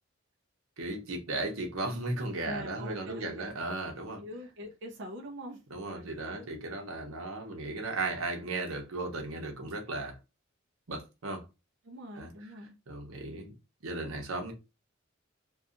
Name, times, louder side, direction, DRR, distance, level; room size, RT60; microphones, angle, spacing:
voice 1, 0.8-4.2 5.7-10.2 10.9-11.4 12.2-12.3 12.9-13.5 13.8-14.5, right 2 dB, 85° right, 0.9 m, -36 dB
voice 2, 2.4-3.5 4.2-6.5 11.8-12.7, equal, 55° right, 0.5 m, -44 dB
2.7 x 2.3 x 2.4 m
head